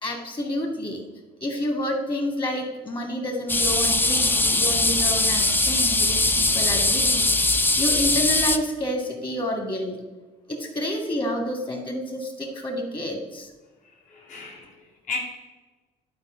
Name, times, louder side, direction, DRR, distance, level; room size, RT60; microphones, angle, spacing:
voice 1, 0.0-1.0 1.4-7.5 7.8-10.0 10.5-13.5, left 1 dB, 30° left, 2 dB, 2.3 m, -29 dB
sound 1, 3.5-8.6, left 2 dB, 10° left, 0.5 m, -21 dB
voice 2, 13.8-15.2, left 5 dB, 50° left, -2 dB, 2.2 m, -35 dB
11.0 x 5.0 x 3.9 m, 1.3 s
cardioid pair, 110°, 17 cm